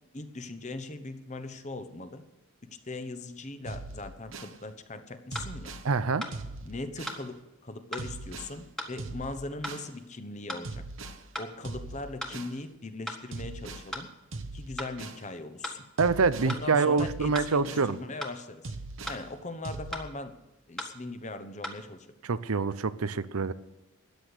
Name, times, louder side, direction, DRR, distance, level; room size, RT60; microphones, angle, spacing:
voice 1, 0.1-2.2 2.6-5.7 6.6-10.8 11.4-14.1 14.5-15.8 16.4-18.7 19.0-20.3 20.7-22.1, left 2 dB, 35° left, 9 dB, 1.1 m, -40 dB
sound 1, 3.7-4.6 5.3-5.9 6.3-7.2 8.0-8.6 9.0-9.9 10.6-11.2 11.6-12.6 13.3-13.9 14.3-15.2 16.0-16.5 17.0-17.9 18.6-19.2 19.6-19.9, right 2 dB, 65° right, 1.0 m, -40 dB
sound 2, 5.3-5.5 6.2-6.4 7.1-7.2 7.9-8.1 8.8-8.9 9.6-9.8 10.5-10.7 11.3-11.5 12.2-12.4 13.1-13.2 13.9-14.1 14.8-14.9 15.6-15.8 16.5-16.7 17.3-17.5 18.2-18.4 19.1-19.2 19.9-20.1 20.8-20.9 21.6-21.7, equal, ahead, 1.5 m, -37 dB
voice 2, 5.8-6.3 16.0-18.0 22.3-23.5, right 4 dB, 85° right, 14 dB, 0.7 m, -26 dB
13.5 x 9.9 x 6.7 m, 0.98 s
head